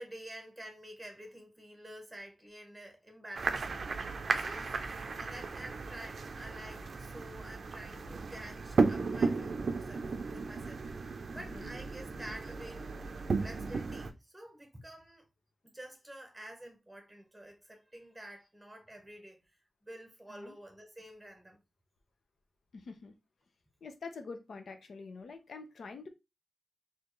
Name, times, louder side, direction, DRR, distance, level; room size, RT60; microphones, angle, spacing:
voice 1, 0.0-3.7 4.3-4.8 5.2-10.9 11.3-12.9 13.4-15.3 15.6-21.6, right 1 dB, 5° right, 0.9 m, -49 dB
sound 1, 3.3-14.1, right 4 dB, 55° right, 0.5 m, -35 dB
voice 2, 11.3-11.7 20.3-20.6 22.7-23.1 23.8-26.1, left 4 dB, 80° left, 0.7 m, -46 dB
4.3 x 2.8 x 3.1 m
wide cardioid pair, 180°, 0 cm